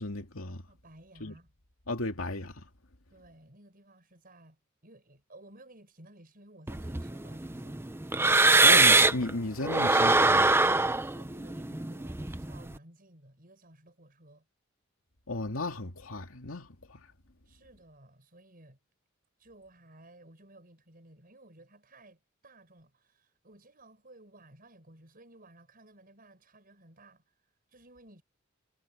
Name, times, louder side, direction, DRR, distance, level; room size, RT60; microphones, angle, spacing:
voice 1, 0.0-0.6 1.2-1.3 1.9-2.6 8.6-10.6 15.3-17.1, left 2 dB, 80° left, 2.4 m, -35 dB
voice 2, 0.7-1.5 3.1-7.9 11.1-14.5 17.4-18.8 19.4-28.2, right 1 dB, 45° right, 6.8 m, -56 dB
sound 1, 6.7-9.3 9.6-12.7, right 3 dB, 10° right, 0.6 m, -23 dB
head